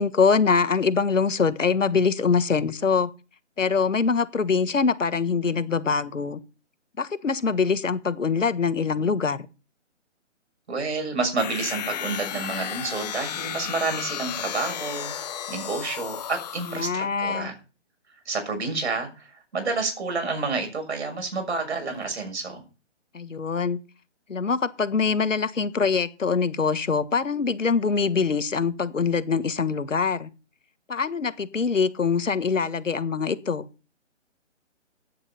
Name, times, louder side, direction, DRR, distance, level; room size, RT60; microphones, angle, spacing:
voice 1, 0.0-3.1 3.6-6.4 7.0-9.5 16.7-17.5 23.1-23.8 24.3-30.3 30.9-33.7, left 5 dB, 80° left, 1.5 m, -24 dB
voice 2, 10.7-15.1 15.5-17.6 18.2-22.6, right 3 dB, 60° right, 6.7 m, -29 dB
sound 1, 11.4-16.9, left 10 dB, 35° left, 1.4 m, -33 dB
16.5 x 10.0 x 4.3 m
figure-of-eight pair, 150°, 37 cm